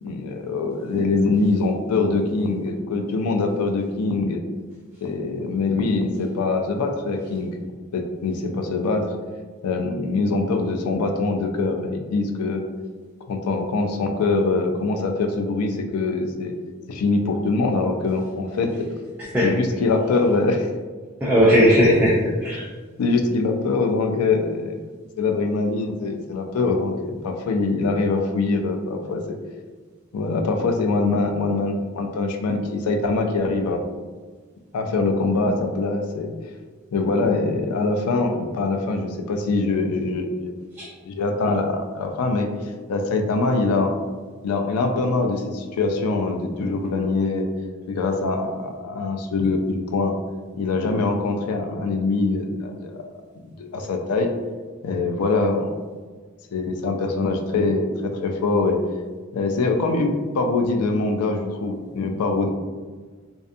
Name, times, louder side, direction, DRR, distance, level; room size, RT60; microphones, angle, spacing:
voice 1, 0.0-4.4 5.0-7.5 7.9-9.0 9.6-12.6 13.3-16.5 16.9-18.7 19.4-20.7 23.0-24.8 25.2-29.4 30.1-33.8 34.7-36.3 36.9-40.5 41.0-42.5 42.9-43.9 44.4-47.5 47.9-50.2 50.6-53.0 53.4-54.3 54.8-55.8 56.5-58.8 59.3-62.5, left 3 dB, 90° left, 4 dB, 0.3 m, -23 dB
voice 2, 21.2-22.6 40.8-40.9, equal, 10° right, -7 dB, 0.3 m, -17 dB
2.5 x 2.3 x 2.5 m, 1.4 s
head